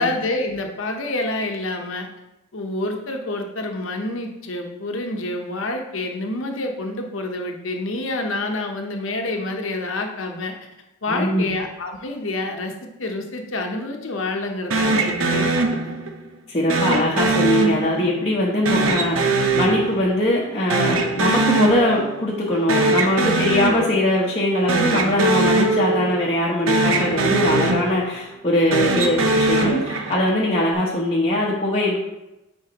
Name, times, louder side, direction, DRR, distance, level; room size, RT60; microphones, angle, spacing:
voice 1, 0.0-2.1 2.5-10.5 11.0-15.9, left 2 dB, 70° left, 3 dB, 0.9 m, -27 dB
voice 2, 11.1-11.5 16.5-32.0, left 1 dB, 30° left, -7 dB, 0.9 m, -21 dB
sound 1, 14.7-16.2 16.7-18.2 18.7-20.4 20.7-22.2 22.5-24.2 24.6-26.4 26.7-28.2 28.6-30.4, right 2 dB, 75° right, 0.8 m, -21 dB
9.1 x 4.3 x 3.0 m, 0.96 s
head